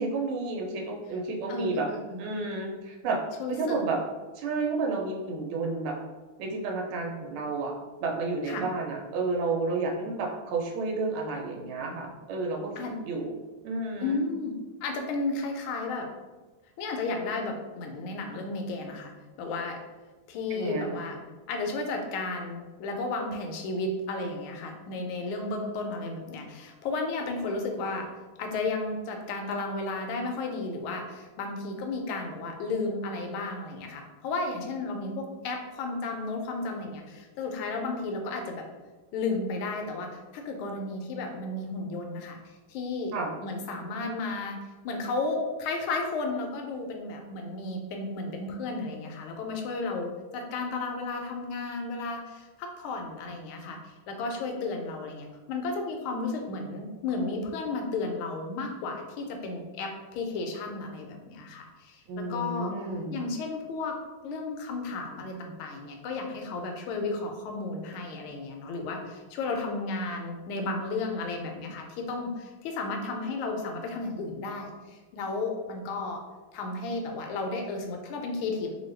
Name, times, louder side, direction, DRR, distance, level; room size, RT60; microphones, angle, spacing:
voice 1, 0.0-1.9 2.2-3.2 3.5-4.0 4.4-6.0 6.4-7.7 8.0-12.7 13.0-13.3 13.6-14.2 20.5-21.0 43.1-43.3 62.1-63.2, right 3 dB, 85° right, 1 dB, 1.4 m, -31 dB
voice 2, 1.5-2.2 3.4-3.8 8.5-8.6 12.8-12.9 14.0-14.5 14.8-16.1 16.8-19.1 19.4-19.8 20.3-21.2 21.5-28.1 28.4-38.6 39.1-42.4 42.7-43.1 43.4-62.7 63.1-63.9 64.2-76.2 76.5-78.7, left 3 dB, 80° left, 3 dB, 1.4 m, -33 dB
3.4 x 2.2 x 3.2 m, 1.2 s
omnidirectional pair, 2.3 m